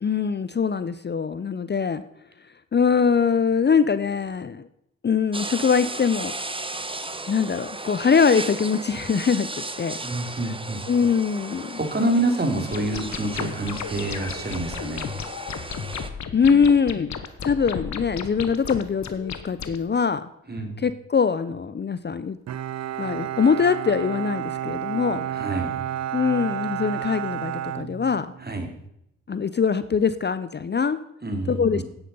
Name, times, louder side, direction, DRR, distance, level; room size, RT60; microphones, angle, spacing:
voice 1, 0.0-2.0 2.7-4.7 5.0-6.3 7.3-9.5 9.8-10.0 10.9-11.8 16.3-17.1 17.4-20.3 20.8-22.4 23.0-25.3 26.1-28.3 29.3-31.0 31.5-31.8, left 6 dB, 35° left, 13 dB, 0.6 m, -22 dB
sound 1, 5.3-16.1, right 2 dB, 15° right, 1.2 m, -35 dB
voice 2, 10.0-10.8 11.5-15.1 20.5-20.8 25.3-25.7 28.4-28.7 31.2-31.8, right 2 dB, 30° right, 4 dB, 2.9 m, -27 dB
sound 2, 12.7-19.8, left 7 dB, 65° left, 1.2 m, -34 dB
Bowed string instrument, 22.5-28.6, right 10 dB, 60° right, 0.6 m, -31 dB
10.0 x 9.4 x 5.5 m, 0.79 s
supercardioid pair, 50°, 30 cm